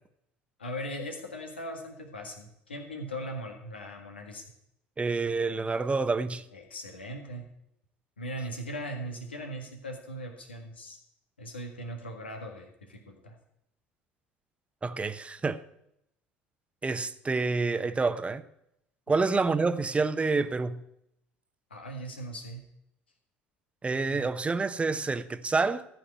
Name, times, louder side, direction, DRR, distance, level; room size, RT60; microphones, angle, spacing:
voice 1, 0.6-4.4 6.5-7.5 8.2-11.0 11.4-13.4 19.2-19.3 21.7-22.6 23.9-24.3, equal, 90° left, 1.7 m, -39 dB
voice 2, 5.0-6.4 14.8-15.6 16.8-18.4 19.1-20.8 23.8-25.9, right 4 dB, 20° right, 0.9 m, -28 dB
14.0 x 5.9 x 8.2 m
hypercardioid pair, 65°, 6 cm